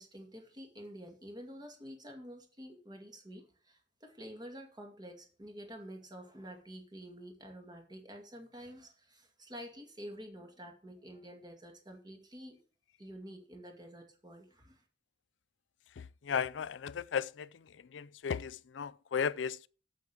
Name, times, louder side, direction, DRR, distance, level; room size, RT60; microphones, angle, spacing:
voice 1, 0.0-12.6 13.0-14.8, equal, 25° right, 2.2 m, -49 dB
voice 2, 16.0-17.5 17.9-19.7, left 7 dB, 85° left, 0.4 m, -35 dB
8.3 x 7.5 x 6.8 m
head